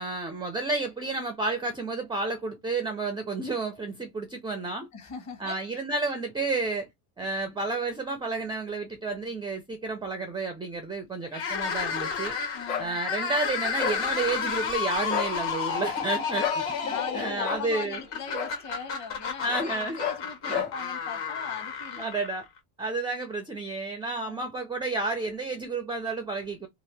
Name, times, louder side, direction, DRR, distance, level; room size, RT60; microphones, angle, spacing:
voice 1, 0.0-4.9 5.4-6.9 7.2-12.3 12.8-18.0 19.4-20.0 20.4-20.7 22.0-22.4 22.8-26.7, right 3 dB, 10° right, 0.3 m, -31 dB
voice 2, 4.9-5.8 12.5-13.0 16.8-22.1 24.2-24.5, left 5 dB, 35° left, 1.1 m, -40 dB
sound 1, 11.3-22.6, left 6 dB, 60° left, 1.5 m, -32 dB
sound 2, 12.7-12.9 13.8-14.0 15.0-15.3 16.4-16.6 17.4-17.7 18.3-18.5 19.5-19.7 20.0-20.2 20.5-20.7, left 7 dB, 80° left, 1.4 m, -30 dB
2.8 x 2.5 x 3.2 m
cardioid pair, 130°, 49 cm